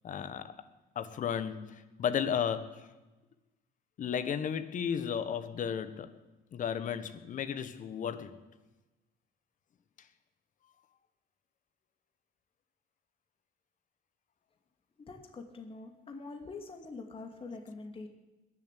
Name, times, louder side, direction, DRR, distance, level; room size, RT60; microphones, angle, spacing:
voice 1, 0.0-0.5 0.9-2.9 4.0-6.1 6.5-8.4, left 8 dB, 50° left, 11 dB, 1.3 m, -34 dB
voice 2, 15.0-18.1, left 3 dB, 35° left, 4 dB, 2.4 m, -45 dB
21.0 x 7.4 x 8.4 m, 1.1 s
cardioid pair, 110°, 17 cm